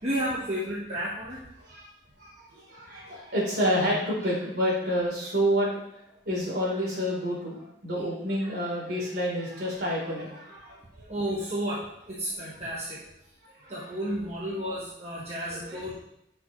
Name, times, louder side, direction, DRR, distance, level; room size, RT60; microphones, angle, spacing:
voice 1, 0.0-1.5 7.9-8.0 8.4-8.5 11.1-13.0 13.7-15.9, equal, 35° right, -5 dB, 1.2 m, -32 dB
voice 2, 2.2-11.1 13.6-13.7 15.6-15.8, equal, 60° right, -4 dB, 3.6 m, -29 dB
11.0 x 6.3 x 3.1 m, 0.80 s
head